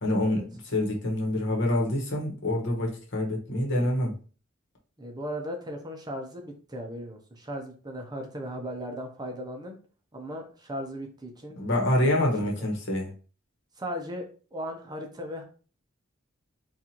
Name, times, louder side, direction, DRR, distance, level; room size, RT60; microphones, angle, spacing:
voice 1, 0.0-4.1 11.6-13.1, left 1 dB, 60° left, 0 dB, 1.1 m, -26 dB
voice 2, 5.0-9.8 10.1-11.6 12.1-12.2 12.4-12.7 13.8-15.4, equal, 20° right, 2 dB, 0.6 m, -37 dB
4.1 x 2.5 x 2.8 m, 0.38 s
head